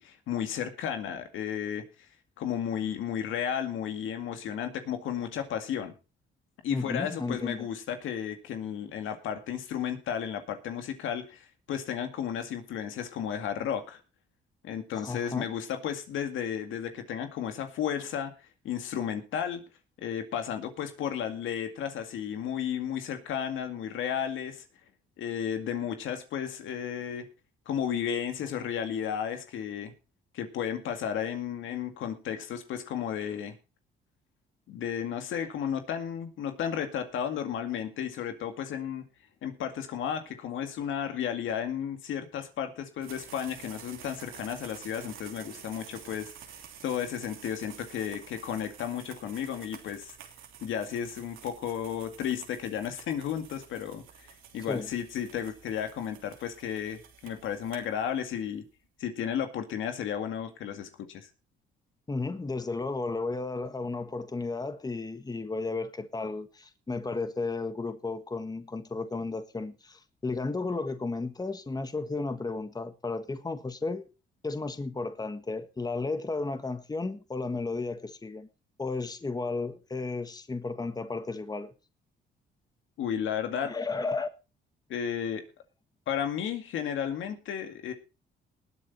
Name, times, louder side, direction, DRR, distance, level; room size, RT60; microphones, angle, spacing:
voice 1, 0.0-1.8 2.4-5.9 6.6-14.0 14.6-19.6 20.0-24.6 25.2-27.3 27.7-29.9 30.3-33.6 34.7-39.1 39.4-46.3 46.8-50.1 50.6-54.3 54.5-58.6 59.0-61.3 83.0-83.7 84.9-85.4 86.1-87.9, left 8 dB, 80° left, 2.1 m, -33 dB
voice 2, 6.7-7.7 14.9-15.5 54.7-54.9 62.1-74.0 74.4-78.5 78.8-81.7 83.6-84.3, left 3 dB, 20° left, 1.5 m, -33 dB
sound 1, 43.0-58.4, right 9 dB, 85° right, 2.9 m, -50 dB
20.0 x 7.6 x 4.1 m
cardioid pair, 90°, 20 cm